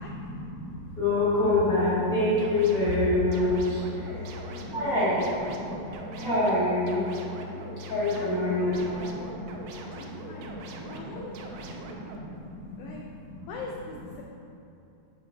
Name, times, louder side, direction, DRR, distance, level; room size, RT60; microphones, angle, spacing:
voice 1, 0.0-4.2 4.6-7.1 7.8-9.7 10.4-13.0 13.2-13.5, left 2 dB, 35° left, -10 dB, 1.6 m, -27 dB
sound 1, 2.0-12.2, right 3 dB, 90° right, 2.8 m, -42 dB
voice 2, 4.1-4.7 8.1-9.1 9.9-10.5 10.9-12.4 12.8-13.0 13.5-14.2, left 3 dB, 85° left, -1 dB, 2.0 m, -43 dB
9.4 x 6.3 x 3.9 m, 2.8 s
omnidirectional pair, 4.9 m